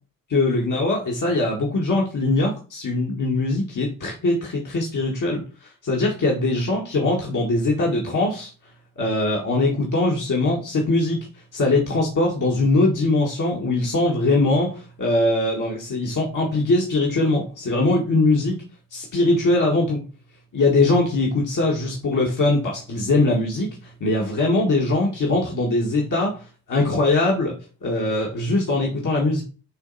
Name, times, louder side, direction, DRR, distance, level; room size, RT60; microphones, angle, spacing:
voice 1, 0.3-8.5 9.0-11.2 11.5-18.6 18.9-20.0 20.5-26.4 26.7-27.5 27.8-29.4, left 2 dB, 55° left, -2 dB, 2.0 m, -21 dB
7.8 x 3.0 x 4.2 m, 0.34 s
supercardioid pair, 45°, 37 cm